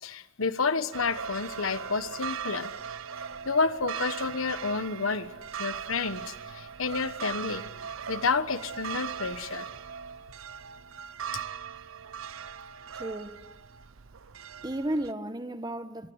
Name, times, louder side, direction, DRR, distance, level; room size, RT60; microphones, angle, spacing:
voice 1, 0.0-2.7 3.4-5.3 5.6-7.6 8.1-9.7 11.3-11.4, left 4 dB, 85° left, 1.3 m, -30 dB
sound 1, 0.9-15.1, right 7 dB, 85° right, 0.8 m, -39 dB
voice 2, 12.9-13.4 14.6-16.1, right 1 dB, 20° right, 1.3 m, -33 dB
24.5 x 23.0 x 8.1 m
head